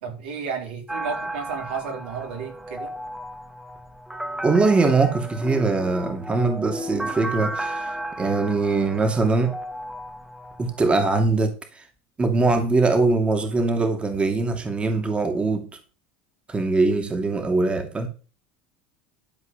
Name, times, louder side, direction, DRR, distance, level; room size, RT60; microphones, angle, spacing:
voice 1, 0.0-2.9, right 5 dB, 80° right, 3.8 m, -32 dB
sound 1, 0.9-10.9, right 1 dB, 5° right, 1.4 m, -34 dB
voice 2, 4.4-7.9 8.2-9.6 10.6-11.5 12.2-15.7 16.5-18.1, right 3 dB, 20° right, 2.5 m, -22 dB
12.5 x 4.5 x 7.5 m
hypercardioid pair, 95°, 5 cm